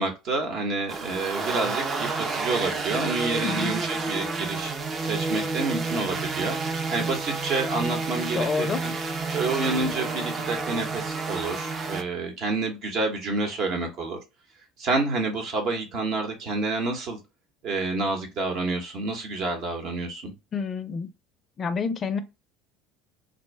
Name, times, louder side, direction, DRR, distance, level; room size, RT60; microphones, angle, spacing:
voice 1, 0.0-4.7 5.0-8.9 9.3-14.2 14.8-17.2 17.6-20.3, right 3 dB, 60° right, 0.9 m, -29 dB
sound 1, 0.9-12.0, right 3 dB, 40° right, 0.5 m, -30 dB
voice 2, 3.4-3.8 8.3-8.8 20.5-21.1 21.6-22.2, left 5 dB, 40° left, 0.4 m, -28 dB
2.6 x 2.1 x 3.2 m
supercardioid pair, 95°, 0 cm